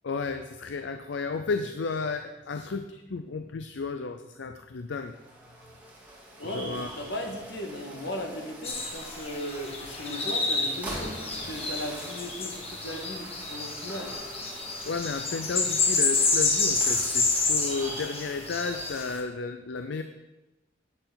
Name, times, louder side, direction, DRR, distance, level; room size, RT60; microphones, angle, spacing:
voice 1, 0.0-5.1 6.5-6.9 14.9-20.0, left 4 dB, 85° left, 8 dB, 0.5 m, -33 dB
sound 1, 4.9-19.0, right 1 dB, 10° right, 2.3 m, -44 dB
voice 2, 6.4-14.2, left 1 dB, 70° left, 3 dB, 1.6 m, -37 dB
sound 2, 8.6-19.2, left 3 dB, 35° left, 1.5 m, -29 dB
10.0 x 8.8 x 4.0 m, 1.1 s
head